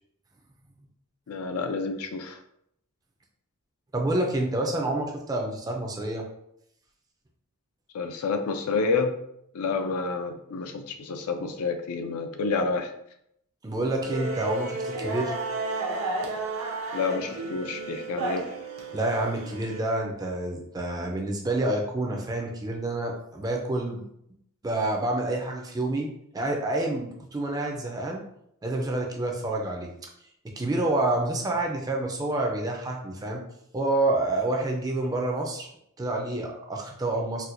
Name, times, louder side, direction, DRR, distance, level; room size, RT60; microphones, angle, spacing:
voice 1, 1.3-2.4 7.9-9.2 9.5-12.9 16.9-18.5, left 4 dB, 75° left, 7 dB, 0.4 m, -29 dB
voice 2, 3.9-6.2 13.6-15.3 18.9-24.0 24.6-28.2 28.6-29.9 30.6-33.4 33.7-35.7 36.0-37.5, right 2 dB, 15° right, 1 dB, 0.4 m, -28 dB
sound 1, 14.0-19.8, right 3 dB, 65° right, 0.6 m, -32 dB
4.1 x 2.2 x 2.5 m, 0.75 s
head